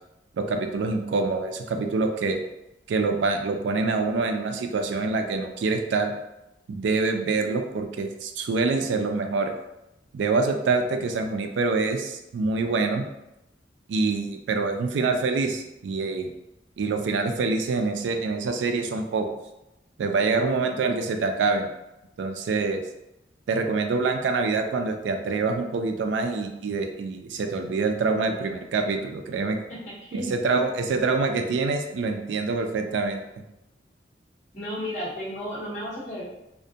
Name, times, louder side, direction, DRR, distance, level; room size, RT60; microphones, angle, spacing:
voice 1, 0.4-2.4 2.9-6.1 6.7-9.5 10.1-13.0 13.9-16.3 16.8-19.3 20.0-21.7 22.2-22.8 23.5-29.6 30.1-33.3, right 3 dB, 85° right, 6 dB, 0.3 m, -25 dB
voice 2, 29.7-30.3 34.5-36.2, equal, 45° left, -10 dB, 0.9 m, -33 dB
2.4 x 2.1 x 2.6 m, 0.91 s
head